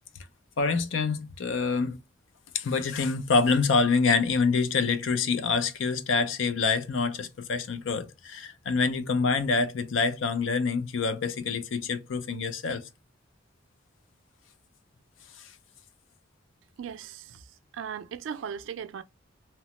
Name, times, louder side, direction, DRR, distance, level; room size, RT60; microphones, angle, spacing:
voice 1, 0.6-2.0 2.5-12.9 15.4-15.5, left 4 dB, 75° left, 0.5 m, -26 dB
voice 2, 16.8-19.0, right 7 dB, 70° right, 0.3 m, -38 dB
2.9 x 2.0 x 2.9 m
head